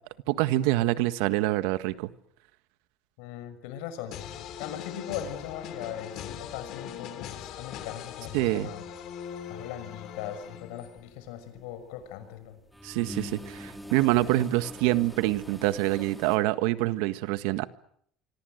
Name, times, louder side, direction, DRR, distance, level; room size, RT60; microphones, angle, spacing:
voice 1, 0.3-2.1 8.3-8.7 12.8-17.7, right 17 dB, 85° right, 1.6 m, -26 dB
voice 2, 3.2-8.8 9.5-12.6, left 10 dB, 90° left, 6.1 m, -39 dB
sound 1, 4.1-11.1, left 9 dB, 45° left, 3.2 m, -41 dB
sound 2, 10.0-10.3 10.7-12.1 12.5-16.4, left 1 dB, ahead, 2.6 m, -43 dB
25.5 x 25.5 x 8.0 m
cardioid pair, 180°, 0 cm